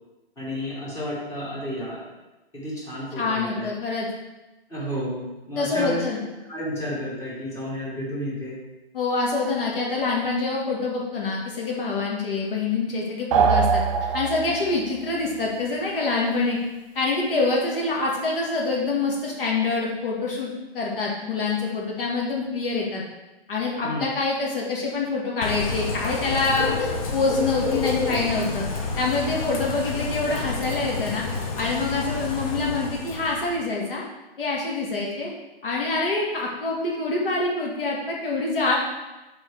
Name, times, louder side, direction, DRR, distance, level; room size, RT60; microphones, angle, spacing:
voice 1, 0.4-2.1 2.5-3.7 4.7-6.0 6.5-8.5 23.8-24.1, equal, 10° left, -5 dB, 1.3 m, -31 dB
voice 2, 3.2-4.1 5.6-6.2 8.9-13.8 14.1-16.6 16.9-23.0 23.5-28.6 29.0-31.2 31.6-34.0 34.4-35.3 35.6-38.8, left 3 dB, 60° left, -3 dB, 1.5 m, -26 dB
sound 1, 13.3-14.8, right 6 dB, 35° right, 0.6 m, -21 dB
Bird / Rain, 25.4-33.6, left 3 dB, 35° left, 0.9 m, -29 dB
6.3 x 4.6 x 3.3 m, 1.1 s
hypercardioid pair, 150°, 31 cm